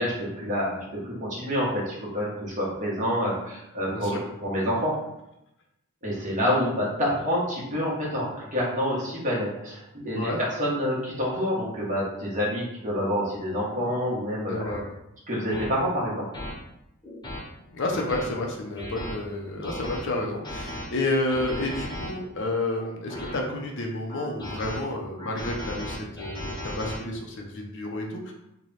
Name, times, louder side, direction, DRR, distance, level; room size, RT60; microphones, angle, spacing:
voice 1, 0.0-4.9 6.0-14.5 15.3-16.3, equal, 35° right, -6 dB, 1.1 m, -27 dB
voice 2, 10.1-10.4 14.5-14.9 17.7-28.3, left 2 dB, 55° left, 1 dB, 0.6 m, -30 dB
sound 1, 12.9-13.1 13.7-13.9 14.6-14.8 15.5-15.7 16.3-16.5 17.0-17.4 17.9-18.3 18.8-19.1 19.6-20.0 20.4-20.8 21.3-22.1 22.7-23.4 24.1-24.8 25.2-27.0, left 1 dB, 20° left, 0.7 m, -36 dB
3.1 x 2.2 x 4.0 m, 0.87 s
head